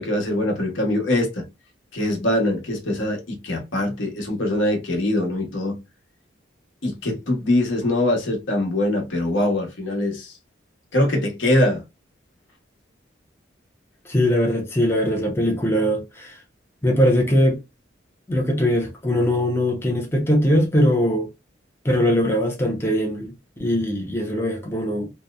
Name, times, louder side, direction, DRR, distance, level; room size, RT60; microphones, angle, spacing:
voice 1, 0.0-1.4 1.9-5.8 6.8-10.3 10.9-11.8, left 1 dB, 80° left, 0.9 m, -23 dB
voice 2, 14.0-16.4 16.8-17.6 18.3-21.3 21.8-25.1, equal, 10° left, 0.5 m, -21 dB
2.8 x 2.0 x 2.3 m
head